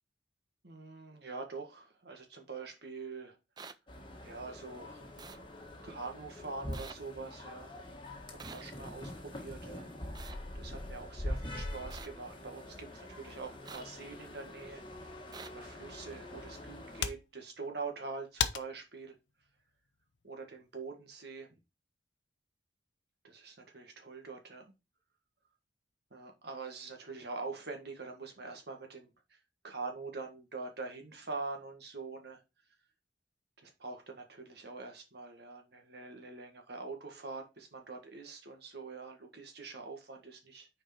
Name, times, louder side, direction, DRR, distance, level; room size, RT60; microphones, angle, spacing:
voice 1, 0.6-3.4 4.2-5.1 5.8-7.7 8.4-9.9 10.5-14.8 15.5-19.1 20.2-21.5 23.2-24.7 26.1-29.4 29.6-32.4 33.6-40.7, right 4 dB, 60° right, 1.6 m, -44 dB
sound 1, 3.6-3.7 5.2-5.4 6.7-6.9 8.4-8.6 10.1-10.4 11.9-12.1 13.7-13.8 15.3-15.5, right 5 dB, 25° right, 0.4 m, -47 dB
sound 2, 3.9-17.1, left 1 dB, 25° left, 1.5 m, -44 dB
sound 3, 16.8-20.9, left 8 dB, 85° left, 0.7 m, -41 dB
6.3 x 4.7 x 4.3 m
head